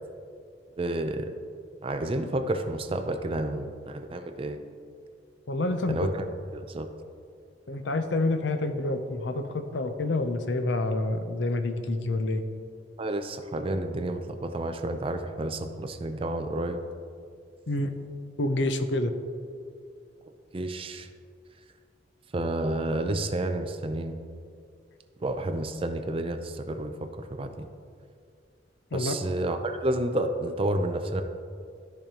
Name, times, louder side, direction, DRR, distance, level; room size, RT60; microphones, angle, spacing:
voice 1, 0.8-1.3 1.8-4.6 5.9-6.2 6.5-6.9 13.0-16.8 20.5-21.1 22.3-24.2 25.2-27.7 28.9-31.2, right 1 dB, 30° right, 7 dB, 0.5 m, -30 dB
voice 2, 5.5-6.0 7.7-12.4 17.7-18.0 18.4-19.2 28.9-29.1, left 2 dB, 75° left, 8 dB, 0.6 m, -28 dB
13.5 x 5.2 x 2.9 m, 2.2 s
head